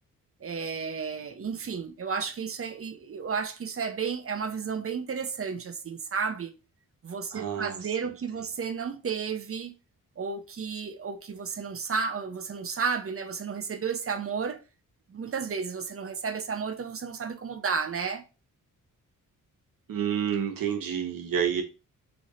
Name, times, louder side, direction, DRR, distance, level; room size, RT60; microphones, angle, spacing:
voice 1, 0.4-6.6 7.0-9.8 10.2-14.6 15.1-18.3, right 6 dB, 40° right, 0.8 m, -32 dB
voice 2, 7.3-8.0 19.9-21.6, right 8 dB, 80° right, 1.2 m, -29 dB
3.5 x 3.2 x 4.2 m
cardioid pair, 90°, 33 cm